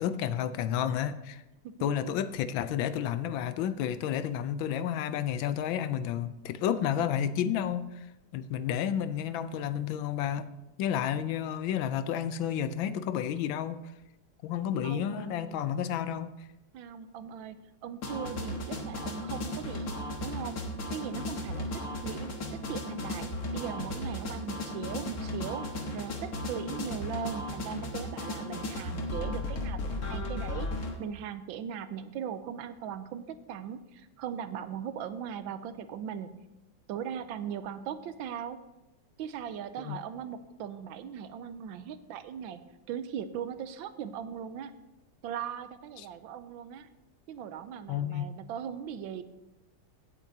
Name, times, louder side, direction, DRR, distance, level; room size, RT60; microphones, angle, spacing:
voice 1, 0.0-1.4 1.8-8.1 8.3-10.5 10.8-13.8 14.4-16.3 39.8-40.0 47.9-48.3, left 9 dB, 85° left, 13 dB, 1.4 m, -31 dB
voice 2, 14.8-15.6 16.7-20.0 20.2-20.6 20.9-30.7 31.0-36.5 36.9-38.6 39.2-42.6 42.9-44.7 45.2-46.9 47.3-49.2, right 8 dB, 90° right, 12 dB, 1.4 m, -39 dB
sound 1, 18.0-30.9, left 1 dB, 50° left, 1.7 m, -35 dB
17.0 x 8.3 x 2.8 m, 0.95 s
omnidirectional pair, 2.1 m